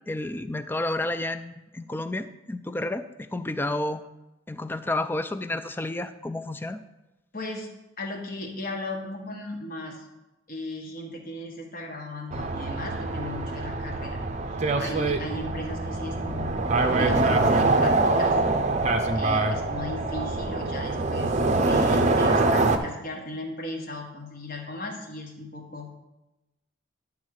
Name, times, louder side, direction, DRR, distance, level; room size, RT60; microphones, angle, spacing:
voice 1, 0.1-4.0 4.5-6.8, left 2 dB, 10° left, 11 dB, 0.3 m, -31 dB
voice 2, 7.3-7.7 8.0-10.1 10.5-14.2 14.5-16.5 17.0-18.4 19.1-21.3 21.6-25.9, left 2 dB, 45° left, 1 dB, 1.4 m, -36 dB
sound 1, 12.3-22.8, right 2 dB, 35° right, 0.6 m, -24 dB
10.5 x 3.6 x 6.4 m, 0.98 s
head